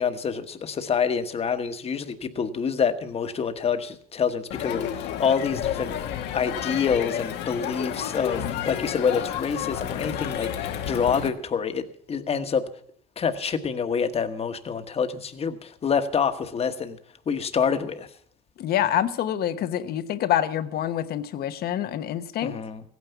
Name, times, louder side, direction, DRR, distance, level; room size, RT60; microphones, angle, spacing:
voice 1, 0.0-12.6 13.2-17.0 17.3-18.1 22.4-22.8, left 6 dB, 35° left, 8 dB, 1.2 m, -27 dB
Crowd, 4.5-11.3, left 10 dB, 85° left, 1.2 m, -31 dB
voice 2, 18.6-22.6, left 11 dB, 65° left, 10 dB, 1.0 m, -26 dB
15.5 x 9.4 x 6.8 m, 0.62 s
cardioid pair, 110°, 17 cm